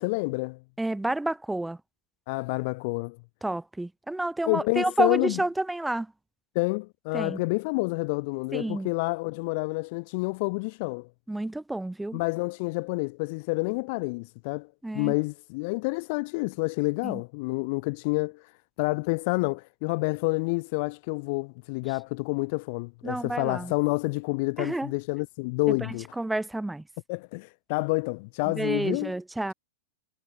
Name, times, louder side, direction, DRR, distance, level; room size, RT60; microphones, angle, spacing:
voice 1, 0.0-0.6 2.3-3.2 4.5-5.4 6.6-11.1 12.1-14.7 14.9-18.4 18.8-26.1 27.1-29.1, left 28 dB, 45° left, 0.3 m, -28 dB
voice 2, 0.8-1.8 3.4-6.1 7.1-7.4 8.5-8.9 11.3-12.2 14.8-15.1 17.0-17.2 23.0-23.7 24.6-24.9 25.7-26.8 28.5-29.5, right 2 dB, 5° right, 0.7 m, -30 dB
figure-of-eight pair, 95°, 0 cm